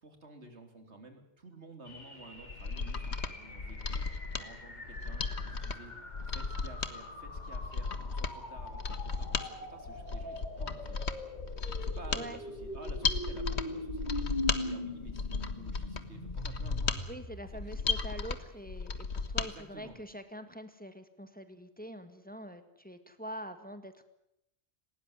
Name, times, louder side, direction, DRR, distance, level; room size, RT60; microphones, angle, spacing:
voice 1, 0.0-5.2 5.5-5.9 6.3-11.0 11.8-17.1 17.7-18.0 19.4-20.0, right 2 dB, 90° right, 6 dB, 3.7 m, -52 dB
sound 1, 1.9-18.1, left 1 dB, 40° left, 3.5 m, -43 dB
Mechanisms, 2.4-19.5 19.8-19.9, left 4 dB, 75° left, 1.7 m, -35 dB
voice 2, 17.1-24.0, equal, 10° left, 10 dB, 1.8 m, -45 dB
19.5 x 18.5 x 9.7 m, 0.79 s
omnidirectional pair, 1.1 m